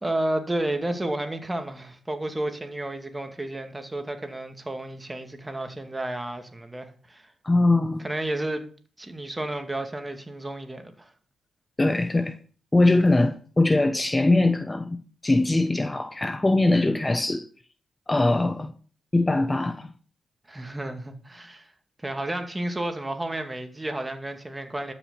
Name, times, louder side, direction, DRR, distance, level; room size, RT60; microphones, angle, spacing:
voice 1, 0.0-7.3 8.0-8.7 9.0-11.1 20.5-21.7 22.0-24.9, right 1 dB, 20° right, 2.3 m, -31 dB
voice 2, 7.4-8.0 11.8-12.4 12.7-15.0 15.2-17.5 18.1-18.7 19.1-19.9, left 2 dB, 20° left, 1.0 m, -21 dB
12.5 x 6.2 x 7.0 m
cardioid pair, 60°, 0 cm